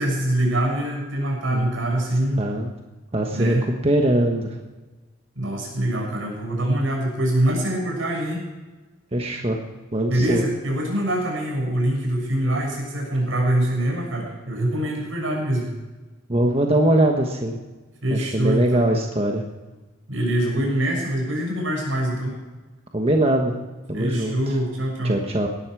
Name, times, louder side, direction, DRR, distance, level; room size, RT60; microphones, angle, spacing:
voice 1, 0.0-2.4 3.3-3.6 5.3-8.4 10.1-15.7 18.0-18.9 20.1-22.4 23.9-25.2, right 1 dB, 80° right, -1 dB, 6.6 m, -24 dB
voice 2, 2.4-2.7 3.1-3.6 3.8-4.5 9.1-9.6 9.9-10.4 16.3-17.6 18.1-19.4 22.9-23.5 23.9-24.3 25.0-25.5, right 1 dB, 30° right, 2 dB, 1.2 m, -21 dB
18.0 x 12.0 x 4.8 m, 1.2 s
head